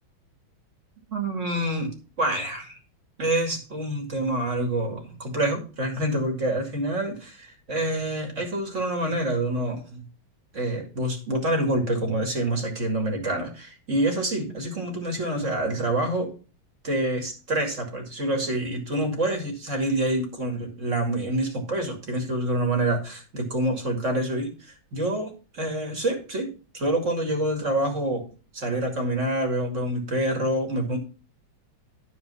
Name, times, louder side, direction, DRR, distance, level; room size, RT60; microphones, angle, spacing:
voice 1, 1.1-1.9 2.2-2.8 3.2-10.0 10.5-16.3 16.8-26.5 26.7-28.3 28.5-31.0, right 1 dB, 35° right, 3 dB, 2.5 m, -27 dB
12.0 x 4.8 x 5.5 m, 0.35 s
omnidirectional pair, 2.2 m